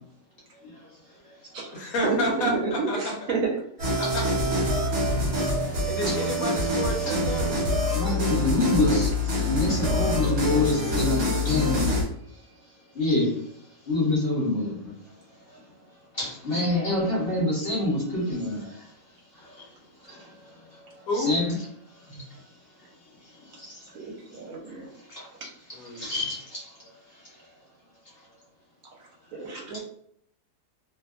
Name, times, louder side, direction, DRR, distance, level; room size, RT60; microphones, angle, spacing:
voice 1, 1.7-3.0 4.0-4.2 5.8-7.6 21.1-21.3 25.7-26.1, left 1 dB, 70° left, -1 dB, 1.1 m, -30 dB
voice 2, 2.5-3.5 23.9-24.0 24.3-24.9 29.3-29.8, right 4 dB, 70° right, -2 dB, 1.1 m, -29 dB
sound 1, 3.8-12.0, left 1 dB, 50° right, 1.1 m, -25 dB
voice 3, 7.9-9.1 9.5-11.9 12.9-13.3 13.9-14.9 16.2-18.6 21.1-21.6 26.0-26.4 29.7-29.8, left 2 dB, 45° left, -4 dB, 0.9 m, -25 dB
2.8 x 2.2 x 2.4 m, 0.68 s
omnidirectional pair, 1.6 m